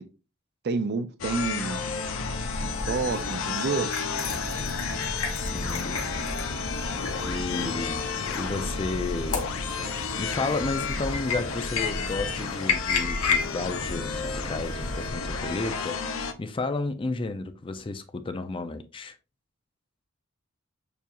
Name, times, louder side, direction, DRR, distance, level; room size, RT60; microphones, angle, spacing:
voice 1, 0.6-1.9 2.6-3.9 7.4-7.7, right 4 dB, 50° right, 0.4 m, -29 dB
sound 1, 1.2-16.3, left 4 dB, 65° left, 0.6 m, -31 dB
sound 2, 2.5-15.1, left 5 dB, 80° left, 1.0 m, -34 dB
voice 2, 5.3-6.5 7.3-8.0 8.3-9.8 10.2-16.0 16.4-19.2, left 3 dB, 25° left, 0.4 m, -32 dB
6.8 x 2.4 x 2.9 m
head